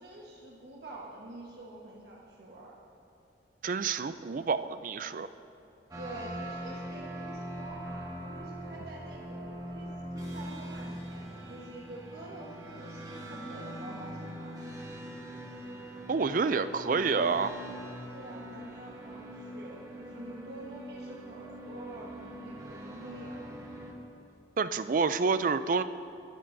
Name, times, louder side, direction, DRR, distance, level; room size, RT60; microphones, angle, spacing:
voice 1, 0.0-2.8 5.9-14.5 16.5-16.8 18.1-23.8, right 1 dB, 65° right, -4 dB, 1.3 m, -47 dB
voice 2, 3.6-5.3 16.1-17.6 24.6-25.8, right 5 dB, 50° right, 12 dB, 0.4 m, -28 dB
sound 1, 5.9-23.9, right 1 dB, 20° right, 1.4 m, -42 dB
22.0 x 12.0 x 2.7 m, 2.8 s
head